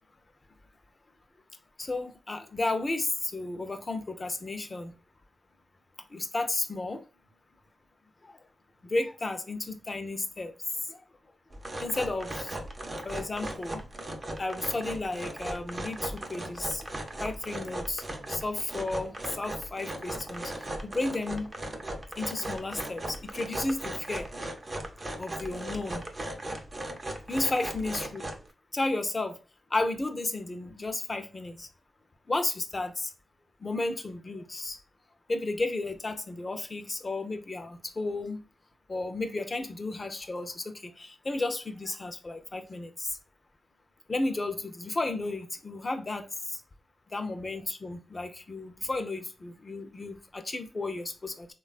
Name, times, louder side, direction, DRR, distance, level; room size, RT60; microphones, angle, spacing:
voice 1, 1.8-4.9 6.1-7.0 8.8-10.5 10.9-11.0 11.8-12.5 13.0-13.8 14.4-16.9 17.2-18.0 18.3-20.5 20.8-21.5 22.2-24.3 25.2-26.0 27.3-28.3 28.7-29.4 29.7-31.7 32.3-33.1 33.6-34.8 35.3-38.4 38.9-43.1 44.1-46.3 47.1-51.5, left 2 dB, 40° left, 0.5 m, -33 dB
sound 1, 11.5-28.5, right 1 dB, 35° right, 0.6 m, -38 dB
3.2 x 2.2 x 2.3 m
cardioid pair, 50°, 0 cm